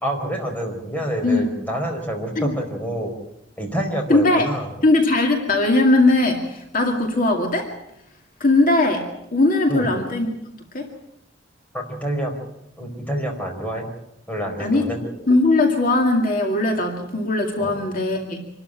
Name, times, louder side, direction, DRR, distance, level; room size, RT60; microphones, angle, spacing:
voice 1, 0.0-3.1 3.6-4.7 9.7-9.9 11.7-12.3 12.8-13.9 14.3-15.0 17.6-17.8, right 1 dB, 10° left, 2 dB, 4.6 m, -27 dB
voice 2, 4.1-4.5 4.8-7.7 8.4-10.3 10.7-10.9 14.6-14.8 15.3-18.4, left 2 dB, 50° left, 2 dB, 2.3 m, -19 dB
26.5 x 13.0 x 9.0 m, 0.83 s
head